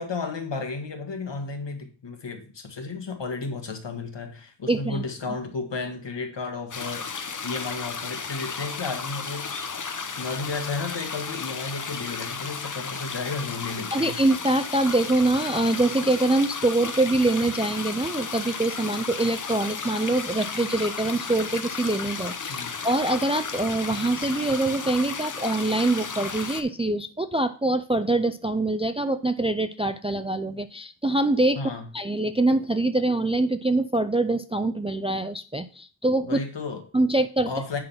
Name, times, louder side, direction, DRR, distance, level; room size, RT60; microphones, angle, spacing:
voice 1, 0.0-7.1 7.4-9.7 10.2-14.2 22.5-22.7 31.6-31.9 36.2-36.8 37.5-37.8, left 4 dB, 60° left, 1.7 m, -33 dB
voice 2, 4.7-5.0 13.9-31.6 31.9-36.4 36.9-37.5, right 2 dB, 15° right, 0.4 m, -24 dB
sound 1, 6.7-26.6, left 5 dB, 40° left, 0.8 m, -34 dB
10.5 x 4.0 x 5.7 m
wide cardioid pair, 80°, 48 cm